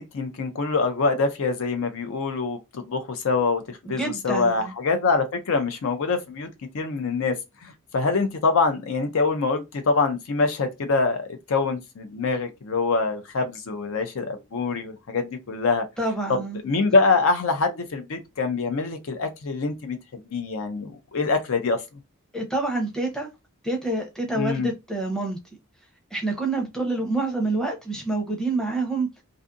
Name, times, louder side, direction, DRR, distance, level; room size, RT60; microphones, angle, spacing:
voice 1, 0.0-6.5 6.7-7.3 7.6-15.8 16.3-21.8 24.3-24.7, left 4 dB, 65° left, 0.5 m, -25 dB
voice 2, 3.8-4.7 16.0-16.6 22.3-23.3 23.6-25.4 26.1-29.2, right 2 dB, 5° left, 0.7 m, -27 dB
2.5 x 2.4 x 2.5 m
head